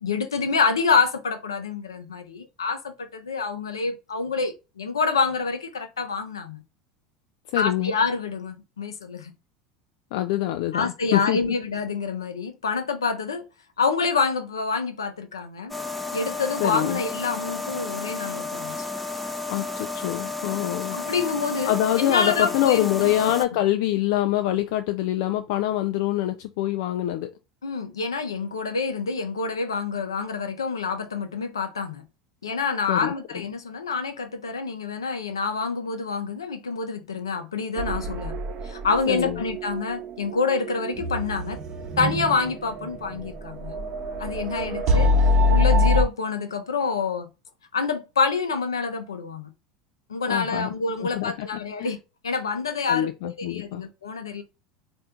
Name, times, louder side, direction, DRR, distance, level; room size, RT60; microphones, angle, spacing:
voice 1, 0.0-6.6 7.6-9.3 10.7-13.5 13.8-15.7 16.1-18.8 20.9-23.1 27.6-32.0 32.4-38.4 38.6-41.6 42.0-43.8 44.2-45.1 45.5-47.3 47.7-49.5 50.1-52.0 52.2-54.4, left 4 dB, 75° left, 0.7 m, -27 dB
voice 2, 7.5-7.9 10.1-11.5 16.6-17.0 19.5-21.0 21.7-27.3 32.9-33.1 39.1-39.4 50.3-50.7 51.0-51.9 52.9-53.8, left 14 dB, 55° left, 0.3 m, -25 dB
sound 1, 15.7-23.4, left 3 dB, 5° left, 0.6 m, -32 dB
sound 2, 37.8-46.0, left 2 dB, 40° right, 0.8 m, -25 dB
4.3 x 2.6 x 3.6 m
figure-of-eight pair, 75°, 2 cm